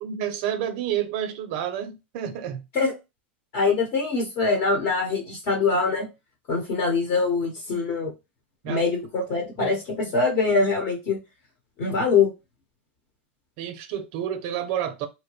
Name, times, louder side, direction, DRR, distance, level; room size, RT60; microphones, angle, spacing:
voice 1, 0.0-2.6 8.6-8.8 9.6-9.8 13.6-15.1, right 10 dB, 55° right, 0.4 m, -29 dB
voice 2, 3.5-6.1 6.5-8.1 8.6-11.2 11.8-12.3, left 4 dB, 50° left, 1.1 m, -23 dB
2.9 x 2.2 x 3.0 m
supercardioid pair, 130°, 6 cm